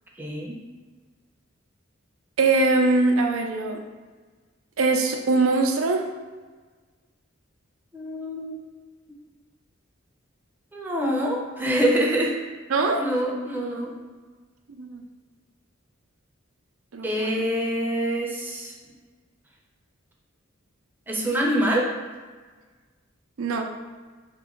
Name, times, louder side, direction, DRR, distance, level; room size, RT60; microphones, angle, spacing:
voice 1, 0.2-0.6 7.9-8.7 10.7-12.4 12.9-13.9 17.0-18.7 21.1-21.9, equal, 10° right, -2 dB, 0.6 m, -25 dB
voice 2, 2.4-3.8 4.8-6.1 12.7-13.1 14.8-15.0 16.9-17.4 23.4-23.6, right 3 dB, 85° right, 4 dB, 0.5 m, -22 dB
3.4 x 3.0 x 3.7 m, 1.4 s
head